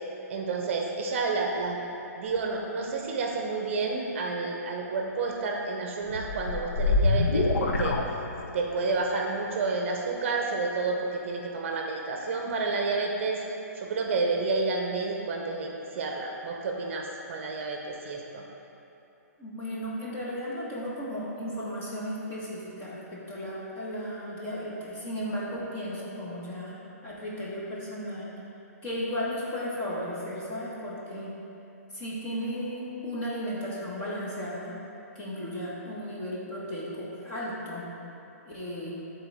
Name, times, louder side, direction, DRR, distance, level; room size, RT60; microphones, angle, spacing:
voice 1, 0.3-1.8 2.2-8.0 8.5-13.4 13.7-18.4, right 3 dB, 45° right, 1 dB, 0.7 m, -30 dB
sound 1, 6.1-8.8, left 3 dB, 75° left, 0.7 m, -26 dB
voice 2, 19.4-26.7 27.0-28.3 28.8-31.3 31.9-34.7 35.1-37.9 38.4-39.0, equal, 20° left, -7 dB, 1.4 m, -35 dB
11.5 x 3.9 x 3.5 m, 2.9 s
hypercardioid pair, 155°, 9 cm